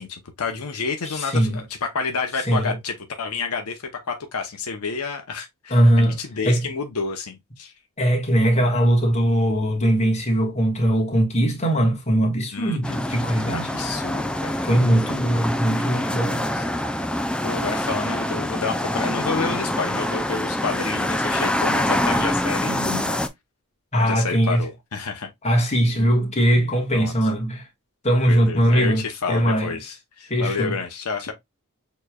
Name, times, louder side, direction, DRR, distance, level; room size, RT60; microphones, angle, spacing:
voice 1, 0.0-7.7 12.5-13.0 13.5-14.7 16.3-16.6 17.4-22.8 23.9-25.3 26.9-27.1 28.3-31.3, left 4 dB, 75° left, 0.8 m, -29 dB
voice 2, 1.0-1.6 2.4-2.8 5.7-6.2 6.4-6.7 8.0-13.7 14.6-16.4 22.6-23.2 23.9-24.7 25.4-27.7 28.0-29.8 30.3-30.8, right 1 dB, 30° left, 1.5 m, -20 dB
sound 1, 12.8-23.3, left 1 dB, 5° left, 0.4 m, -25 dB
6.7 x 3.1 x 2.3 m
head